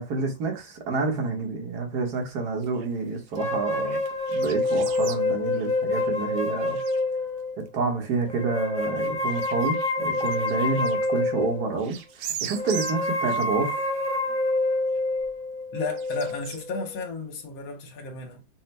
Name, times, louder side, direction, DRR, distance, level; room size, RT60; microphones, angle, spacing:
voice 1, 0.0-4.0 4.3-6.8 7.6-12.0 12.4-13.8, right 4 dB, 60° right, 1.6 m, -28 dB
sound 1, 2.3-2.4 2.6-3.0 3.3-5.2 5.5-6.4 6.6-7.0 7.6-7.7 8.2-8.3 8.8-11.5 11.8-13.5 14.0-14.1 15.0-15.1 15.9-16.7, right 9 dB, 75° right, 1.2 m, -40 dB
sound 2, 3.3-7.5 8.3-11.7 12.5-16.9, left 2 dB, 10° left, 0.4 m, -27 dB
voice 2, 15.7-18.4, left 3 dB, 80° left, 1.6 m, -33 dB
5.6 x 2.0 x 3.2 m
omnidirectional pair, 2.1 m